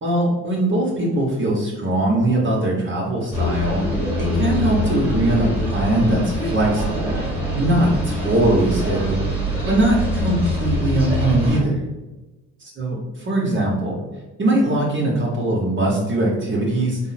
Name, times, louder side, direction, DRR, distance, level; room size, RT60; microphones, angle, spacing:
voice 1, 0.0-3.9 4.2-7.2 7.6-9.3 9.6-11.7 12.8-14.0 14.4-17.0, right 1 dB, 40° right, -3 dB, 1.1 m, -21 dB
sound 1, 3.3-11.6, equal, 5° right, 1.5 m, -24 dB
3.6 x 2.1 x 4.1 m, 1.1 s
supercardioid pair, 85°, 31 cm